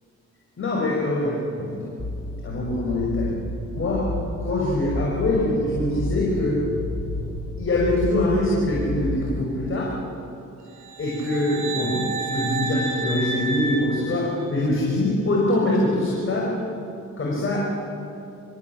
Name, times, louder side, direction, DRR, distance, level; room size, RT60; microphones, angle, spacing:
voice 1, 0.6-1.8 2.4-3.3 3.7-4.1 4.4-6.6 7.6-9.9 11.0-12.0 12.3-16.5 17.2-17.7, left 1 dB, 45° left, -3 dB, 5.7 m, -23 dB
sound 1, 2.0-9.4, left 1 dB, 10° right, 6.3 m, -31 dB
sound 2, 10.8-14.8, right 3 dB, 65° right, 3.7 m, -31 dB
27.5 x 15.5 x 9.0 m, 2.6 s
cardioid pair, 90°, 30 cm